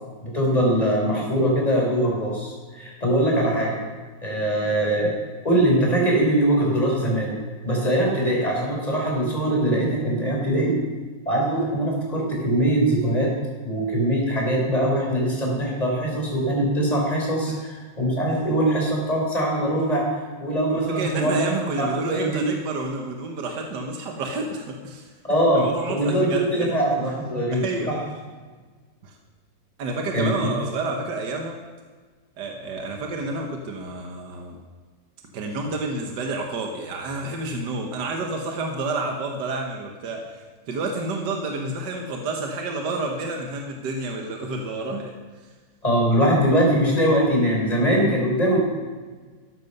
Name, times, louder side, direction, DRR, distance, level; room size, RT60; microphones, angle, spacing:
voice 1, 0.2-3.8 4.2-5.1 5.4-7.3 7.6-10.7 11.3-13.3 13.6-22.4 25.3-28.0 30.1-30.3 45.8-48.6, right 1 dB, 20° left, -2 dB, 4.0 m, -22 dB
voice 2, 20.7-25.1 25.5-26.8 27.5-27.9 29.0-29.2 29.8-31.6 32.4-34.6 35.3-45.1, right 2 dB, 65° right, 2 dB, 1.8 m, -29 dB
13.5 x 11.0 x 5.4 m, 1.4 s
omnidirectional pair, 2.0 m